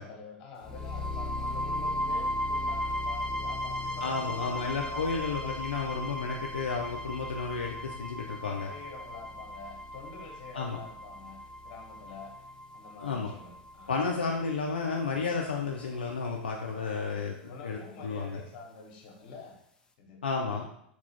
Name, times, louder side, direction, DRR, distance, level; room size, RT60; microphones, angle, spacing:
voice 1, 0.0-5.6 8.7-12.4 12.7-14.2 16.7-19.6 20.0-20.2, left 4 dB, 60° left, 0 dB, 1.0 m, -47 dB
sound 1, 0.6-14.6, left 1 dB, 15° left, 0.5 m, -36 dB
voice 2, 4.0-8.7 10.5-10.8 13.0-13.3 13.9-17.3 17.6-18.4 20.2-20.7, left 4 dB, 90° left, 0 dB, 0.4 m, -32 dB
4.3 x 2.4 x 3.1 m, 0.72 s
hypercardioid pair, 90°, 5 cm